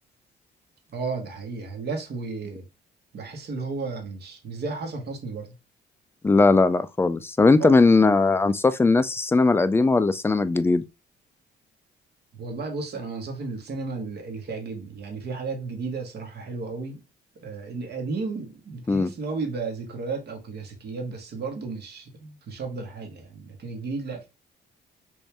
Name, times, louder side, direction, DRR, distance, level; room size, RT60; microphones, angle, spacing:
voice 1, 0.9-2.7 3.1-5.5 7.6-7.8 12.3-17.0 17.4-24.3, right 4 dB, 55° right, 1.2 m, -33 dB
voice 2, 6.2-10.8 18.9-19.1, left 3 dB, 10° left, 0.3 m, -19 dB
3.1 x 2.7 x 3.3 m
cardioid pair, 90°, 20 cm